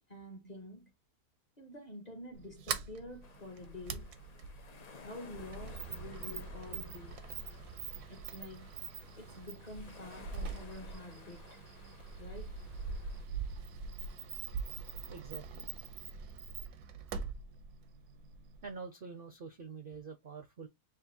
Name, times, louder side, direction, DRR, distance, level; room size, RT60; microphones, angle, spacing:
voice 1, 0.1-0.9 1.6-4.1 5.0-7.2 8.1-8.7 9.2-11.6 12.2-12.6, left 1 dB, 35° left, 0.8 m, -48 dB
Sliding door, 2.3-18.7, right 5 dB, 80° right, 1.2 m, -43 dB
sound 1, 3.2-13.2, left 5 dB, 75° left, 0.3 m, -56 dB
voice 2, 15.1-15.7 18.6-20.7, right 5 dB, 60° right, 0.6 m, -46 dB
6.4 x 2.5 x 2.6 m
omnidirectional pair, 1.6 m